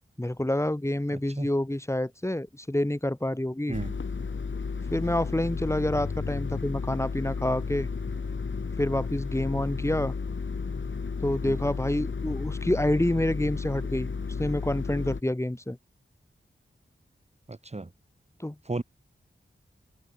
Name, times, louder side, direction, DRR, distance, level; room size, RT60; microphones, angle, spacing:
voice 1, 0.2-3.8 4.9-7.9 8.8-10.1 11.2-14.1 14.4-15.8 18.4-18.8, left 1 dB, 15° left, 4.0 m, -28 dB
sound 1, 3.7-15.2, left 5 dB, 75° left, 5.5 m, -33 dB
voice 2, 17.5-17.9 18.7-18.8, right 2 dB, 30° right, 2.7 m, -33 dB
wide cardioid pair, 80°, 20 cm